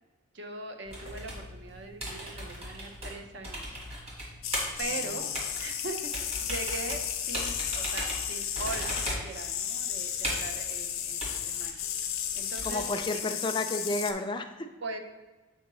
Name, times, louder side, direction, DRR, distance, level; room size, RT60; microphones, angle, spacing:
voice 1, 0.3-3.8 4.8-5.2 5.6-11.8 12.3-12.8 13.1-13.3 14.8-15.0, right 3 dB, 60° right, 4 dB, 0.7 m, -40 dB
keyboard sounds, 0.9-13.0, equal, 30° right, 1.6 m, -38 dB
sound 1, 4.4-14.1, left 9 dB, 90° left, 0.6 m, -34 dB
voice 2, 12.6-14.7, left 2 dB, 25° left, 6 dB, 0.4 m, -31 dB
7.2 x 4.5 x 3.0 m, 1.2 s
head